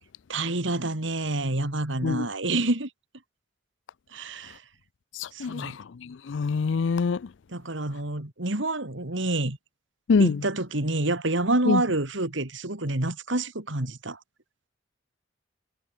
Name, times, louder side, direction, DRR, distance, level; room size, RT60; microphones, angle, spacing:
voice 1, 0.3-2.9 4.1-4.6 5.3-5.8 7.5-9.6 10.2-14.2, right 2 dB, 70° right, 2.8 m, -28 dB
voice 2, 5.1-7.3 10.1-10.4 11.7-11.8, left 5 dB, 65° left, 0.4 m, -25 dB
head